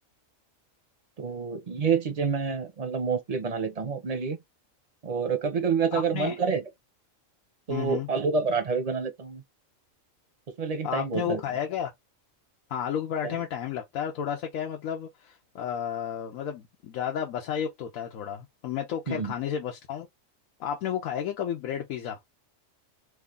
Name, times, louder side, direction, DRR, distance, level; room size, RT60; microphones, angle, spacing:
voice 1, 1.2-4.4 5.0-6.6 7.7-9.4 10.6-11.4 13.2-13.4 19.1-19.3, right 5 dB, 40° right, 0.6 m, -28 dB
voice 2, 5.9-6.4 7.7-8.1 10.8-11.9 12.7-20.1 20.6-22.2, left 9 dB, 90° left, 1.1 m, -32 dB
3.2 x 2.4 x 3.6 m
omnidirectional pair, 1.4 m